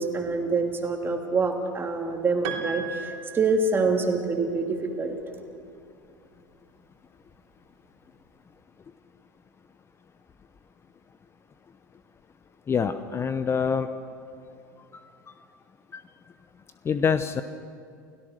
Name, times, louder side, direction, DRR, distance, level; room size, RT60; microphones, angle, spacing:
voice 1, 0.0-5.2, right 3 dB, 20° right, 3 dB, 3.1 m, -26 dB
Piano, 2.4-4.1, right 5 dB, 55° right, 3.2 m, -36 dB
voice 2, 12.7-13.9 14.9-15.3 15.9-16.0 16.8-17.4, left 6 dB, 25° left, 11 dB, 0.9 m, -26 dB
29.0 x 17.5 x 6.6 m, 2.5 s
figure-of-eight pair, 80°, 10 cm